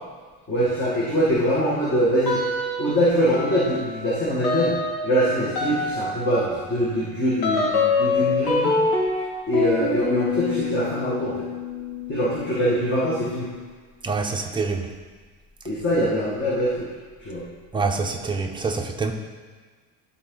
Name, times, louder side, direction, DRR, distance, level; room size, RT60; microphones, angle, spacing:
voice 1, 0.5-2.4 2.8-4.8 5.0-8.8 9.5-11.5 12.1-13.5 15.7-16.9 17.2-17.4, equal, 30° left, -7 dB, 1.7 m, -23 dB
sound 1, 2.2-3.0 3.3-13.7, left 3 dB, 80° left, 1.9 m, -27 dB
voice 2, 14.0-14.9 17.7-19.1, right 4 dB, 15° right, 2 dB, 0.6 m, -26 dB
12.0 x 4.2 x 3.9 m, 1.5 s
cardioid pair, 135°, 37 cm